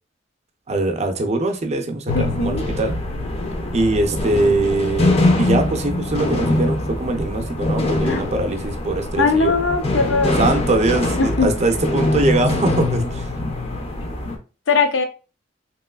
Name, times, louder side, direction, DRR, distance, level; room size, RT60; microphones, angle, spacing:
voice 1, 0.7-3.0 3.7-9.6 10.4-13.3, right 2 dB, 35° right, 5 dB, 0.5 m, -22 dB
voice 2, 2.1-2.7 8.0-8.2 9.2-10.4 11.2-11.5 14.7-15.0, left 4 dB, 85° left, 6 dB, 0.6 m, -20 dB
sound 1, 2.1-14.4, left 2 dB, 30° left, 0.5 m, -23 dB
3.1 x 3.0 x 2.2 m, 0.33 s
head